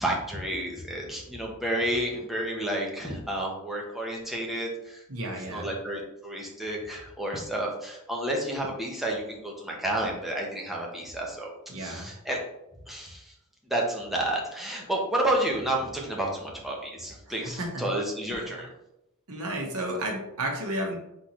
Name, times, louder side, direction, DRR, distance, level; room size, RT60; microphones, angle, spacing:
voice 1, 0.0-11.5 11.8-12.4 12.9-13.3 13.7-18.7, right 1 dB, ahead, -2 dB, 0.9 m, -31 dB
voice 2, 5.1-5.7 11.7-12.1 17.3-17.9 18.3-18.6 19.3-21.0, right 1 dB, 75° right, 1 dB, 1.1 m, -33 dB
4.4 x 3.8 x 3.1 m, 0.86 s
head